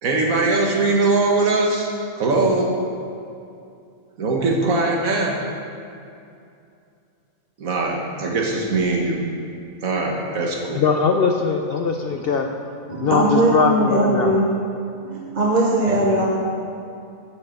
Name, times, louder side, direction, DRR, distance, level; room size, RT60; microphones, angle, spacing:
voice 1, 0.0-2.7 4.2-5.4 7.6-9.2 9.8-10.8 15.9-16.0, right 3 dB, 75° right, 0 dB, 1.6 m, -21 dB
voice 2, 10.8-12.5 13.0-14.3, left 5 dB, 70° left, 4 dB, 0.5 m, -20 dB
voice 3, 12.9-14.5 15.0-16.3, right 1 dB, 35° right, -2 dB, 0.8 m, -19 dB
8.0 x 6.2 x 7.0 m, 2.5 s
omnidirectional pair, 1.5 m